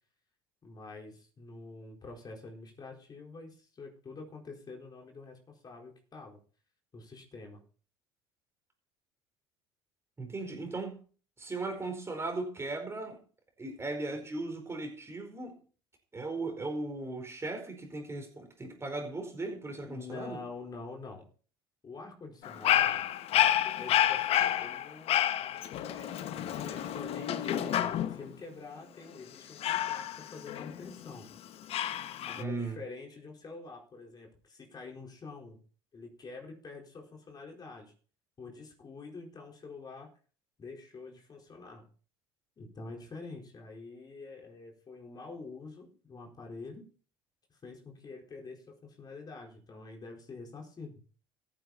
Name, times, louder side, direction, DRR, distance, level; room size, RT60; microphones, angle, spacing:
voice 1, 0.6-6.4 6.9-7.6 19.8-21.3 21.8-23.0 23.3-31.3 32.2-35.6 35.9-37.9 38.4-40.1 40.6-41.9 42.6-46.8 47.5-51.0, left 3 dB, 30° left, 1 dB, 4.4 m, -46 dB
voice 2, 10.2-11.0 11.4-13.2 13.6-15.6 16.1-20.4 32.4-32.8, right 2 dB, 20° right, 5 dB, 4.6 m, -37 dB
Dog, 22.4-28.3 29.6-31.1 31.7-32.4, left 12 dB, 50° left, 1.1 m, -29 dB
14.5 x 9.1 x 4.2 m, 0.39 s
hypercardioid pair, 70°, 13 cm